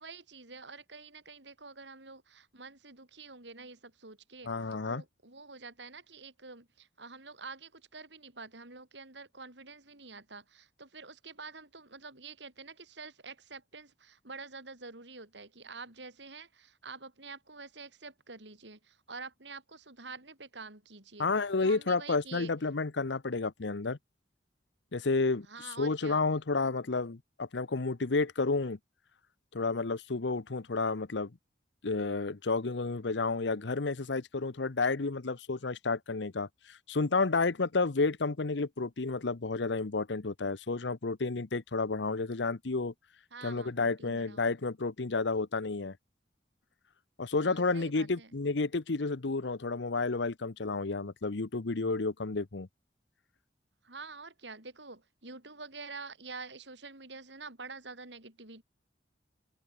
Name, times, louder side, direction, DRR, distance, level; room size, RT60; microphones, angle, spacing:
voice 1, 0.0-4.6 4.9-21.3 21.6-22.5 25.4-26.2 43.3-44.5 47.4-48.3 53.8-58.6, right 4 dB, 70° right, 5.1 m, -47 dB
voice 2, 4.4-5.0 21.2-24.0 24.9-28.8 29.5-31.3 31.8-42.9 43.4-46.0 47.2-52.7, left 3 dB, 70° left, 0.9 m, -31 dB
head